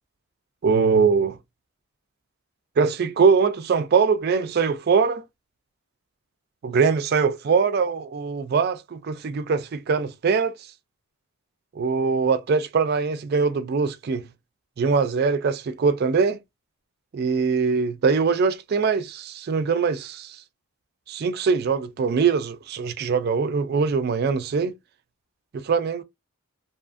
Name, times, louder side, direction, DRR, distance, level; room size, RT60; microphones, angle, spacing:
voice 1, 0.6-1.4 2.8-5.2 6.6-10.6 11.8-14.3 14.8-16.4 17.1-20.4 21.1-24.7 25.5-26.0, right 5 dB, 45° right, 0.3 m, -22 dB
2.7 x 2.4 x 2.4 m
head